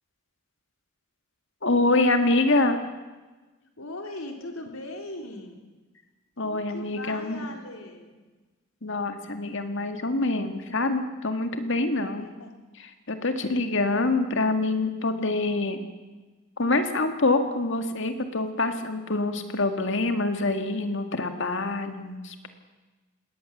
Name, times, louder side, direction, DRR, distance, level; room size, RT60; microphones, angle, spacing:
voice 1, 1.6-2.8 6.4-7.5 8.8-12.3 13.1-15.8 16.6-22.5, left 2 dB, 60° left, 7 dB, 2.0 m, -25 dB
voice 2, 3.8-5.7 6.4-8.2 12.2-12.5, left 2 dB, 80° left, 3 dB, 3.6 m, -39 dB
20.5 x 18.0 x 7.4 m, 1.2 s
head